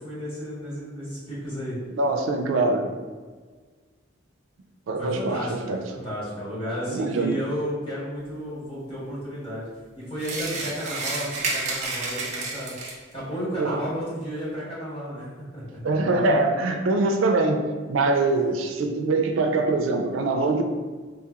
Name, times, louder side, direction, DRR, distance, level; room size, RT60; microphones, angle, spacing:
voice 1, 0.0-1.8 5.0-9.6 10.0-12.7 13.1-15.2 15.5-15.6, equal, 25° left, -10 dB, 1.5 m, -32 dB
voice 2, 1.9-2.9 4.9-5.8 6.9-7.4 13.6-13.8 15.8-17.6 17.9-20.6, right 3 dB, 90° right, 4 dB, 0.4 m, -23 dB
sound 1, 10.2-13.1, right 3 dB, 35° right, 0.5 m, -30 dB
3.7 x 2.8 x 2.4 m, 1.4 s
head